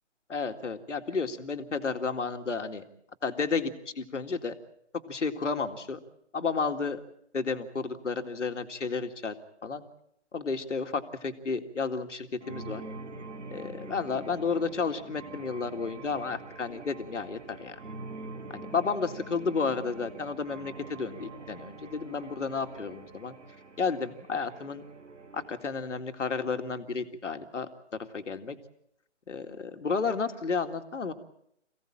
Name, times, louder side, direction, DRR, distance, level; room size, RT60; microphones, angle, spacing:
voice 1, 0.3-2.8 3.2-4.5 5.1-6.0 6.3-7.0 7.3-9.3 9.6-9.8 10.3-12.8 13.5-17.8 18.5-23.4 23.8-24.8 25.3-27.7 28.1-28.6 29.3-31.1, left 5 dB, 80° left, 6 dB, 2.4 m, -32 dB
sound 1, 12.4-25.7, right 3 dB, 80° right, 2.8 m, -45 dB
28.0 x 17.0 x 8.9 m, 0.74 s
hypercardioid pair, 155°, 36 cm